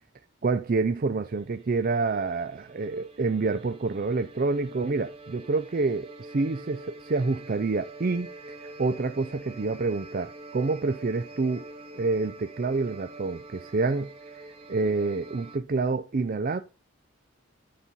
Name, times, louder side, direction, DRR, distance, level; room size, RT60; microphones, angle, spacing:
voice 1, 0.4-11.7 11.9-14.1 14.7-16.6, right 3 dB, 45° right, 0.5 m, -27 dB
sound 1, 1.2-15.6, right 2 dB, 30° right, 2.3 m, -45 dB
9.8 x 4.3 x 5.4 m
head